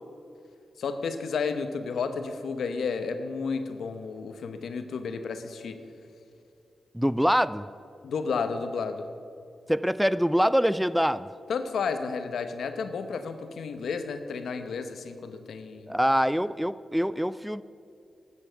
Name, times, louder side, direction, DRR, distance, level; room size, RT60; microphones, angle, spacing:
voice 1, 0.8-5.8 8.0-9.1 11.5-15.9, left 5 dB, 80° left, 8 dB, 0.9 m, -32 dB
voice 2, 6.9-7.7 9.7-11.3 15.9-17.6, equal, ahead, 16 dB, 0.3 m, -24 dB
13.0 x 8.6 x 5.7 m, 2.6 s
cardioid pair, 65°, 0 cm